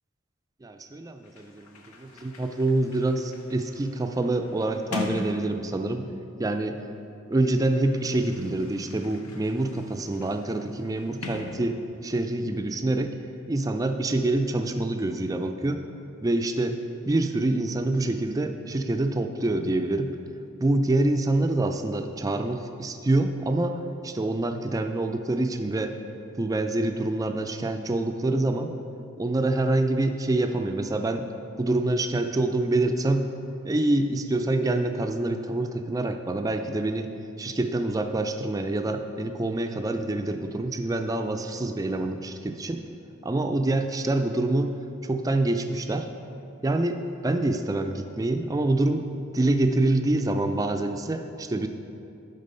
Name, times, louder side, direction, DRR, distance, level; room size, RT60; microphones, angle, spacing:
voice 1, 0.6-6.1 6.4-6.8 7.3-13.1 13.5-15.8 16.2-16.8 17.1-20.1 20.6-25.9 26.4-28.7 29.2-31.3 31.6-33.3 33.6-37.1 37.4-42.8 43.2-44.7 45.0-46.1 46.6-49.0 49.3-51.7, right 2 dB, 15° right, 6 dB, 0.3 m, -26 dB
Sliding door, 0.9-1.0 1.2-6.3 7.2-12.2, left 3 dB, 90° left, 0.8 m, -40 dB
10.5 x 3.9 x 5.4 m, 2.7 s
head